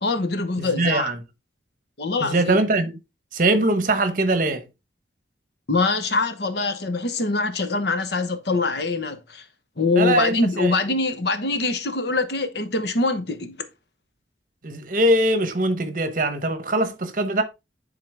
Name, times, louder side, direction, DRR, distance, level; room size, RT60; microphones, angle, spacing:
voice 1, 0.0-1.1 2.0-2.6 5.7-9.4 9.8-13.5, left 3 dB, 65° left, 1.0 m, -24 dB
voice 2, 0.6-1.2 2.2-2.9 3.3-4.6 9.9-10.7 14.6-17.4, right 2 dB, 45° right, 1.0 m, -22 dB
10.0 x 3.8 x 3.4 m
head